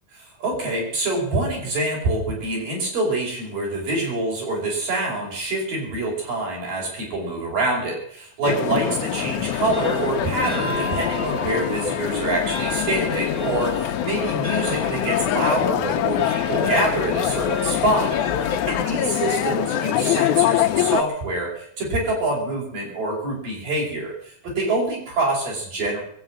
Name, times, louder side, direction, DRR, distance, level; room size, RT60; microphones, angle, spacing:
voice 1, 0.1-26.0, right 2 dB, 90° right, -3 dB, 6.8 m, -26 dB
sound 1, 8.4-21.0, left 11 dB, 75° left, 2.0 m, -24 dB
sound 2, 9.4-19.3, left 1 dB, 15° right, 3.2 m, -35 dB
23.0 x 7.8 x 7.5 m, 0.64 s
omnidirectional pair, 3.8 m